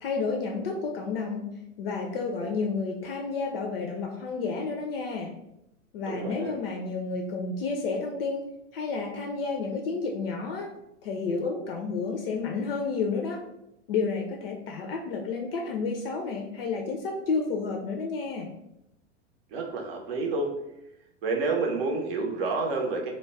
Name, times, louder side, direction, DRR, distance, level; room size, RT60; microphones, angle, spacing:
voice 1, 0.0-1.5 1.8-5.3 5.9-8.5 8.7-10.7 11.0-13.4 13.9-18.5, left 4 dB, 50° left, 1 dB, 0.4 m, -31 dB
voice 2, 6.0-6.6 19.5-20.5 21.2-23.1, right 3 dB, 50° right, 1 dB, 0.7 m, -29 dB
2.2 x 2.1 x 3.2 m, 0.84 s
figure-of-eight pair, 95°, 38 cm